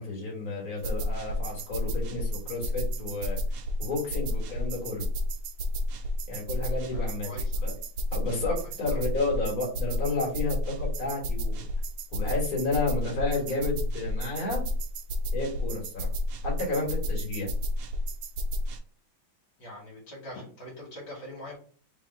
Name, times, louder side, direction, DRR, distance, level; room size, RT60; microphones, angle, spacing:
voice 1, 0.0-3.4 3.8-5.1 6.3-7.3 7.6-7.7 8.1-11.7 12.1-14.6 15.3-16.1 16.4-17.5, left 3 dB, 40° left, -2 dB, 2.0 m, -31 dB
sound 1, 0.8-18.8, left 1 dB, 85° right, 1.6 m, -31 dB
voice 2, 6.9-7.7 8.9-9.0 19.6-21.6, left 1 dB, 65° left, -4 dB, 2.1 m, -43 dB
3.7 x 3.5 x 3.2 m, 0.43 s
omnidirectional pair, 2.4 m